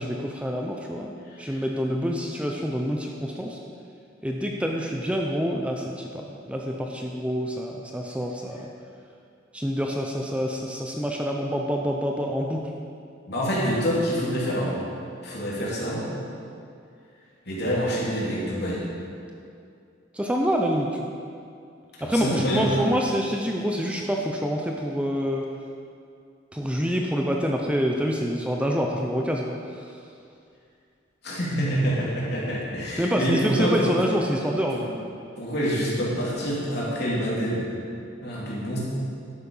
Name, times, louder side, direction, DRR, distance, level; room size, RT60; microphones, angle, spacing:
voice 1, 0.0-1.1 1.4-3.6 4.2-8.7 9.5-12.7 20.1-21.1 22.0-25.4 26.5-29.9 33.0-34.9, equal, 5° right, 1 dB, 0.6 m, -27 dB
voice 2, 1.3-1.6 13.3-14.8 15.2-16.0 17.5-18.8 22.0-22.8 31.2-34.0 34.5-34.9 35.4-37.7 38.2-38.8, equal, 60° left, -5 dB, 3.1 m, -26 dB
11.5 x 8.7 x 5.5 m, 2.4 s
head